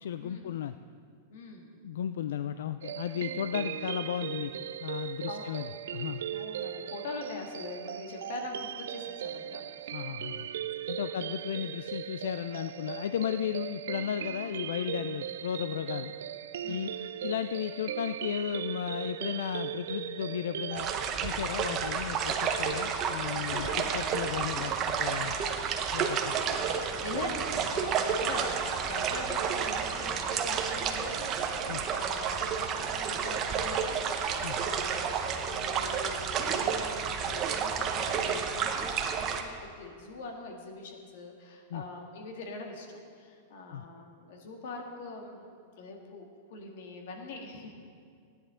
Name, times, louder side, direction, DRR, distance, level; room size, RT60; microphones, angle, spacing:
voice 1, 0.0-0.8 1.8-4.5 4.8-6.2 9.9-10.5 10.9-16.1 16.7-17.0 17.2-20.9 21.2-24.7 25.0-25.4 25.9-26.3 31.7-31.8 34.4-34.7 41.7-41.8 43.7-43.9, left 9 dB, 85° left, 11 dB, 0.3 m, -34 dB
voice 2, 1.3-1.7 5.3-5.5 6.3-10.6 11.0-11.3 16.6-17.1 23.5-23.9 26.3-26.7 27.0-31.4 31.7-47.7, left 3 dB, 60° left, 2 dB, 1.7 m, -43 dB
sound 1, 2.8-21.1, right 10 dB, 85° right, 0.4 m, -38 dB
sound 2, 20.7-39.4, right 6 dB, 25° right, 0.7 m, -31 dB
15.5 x 9.9 x 3.7 m, 2.2 s
supercardioid pair, 170°, 0 cm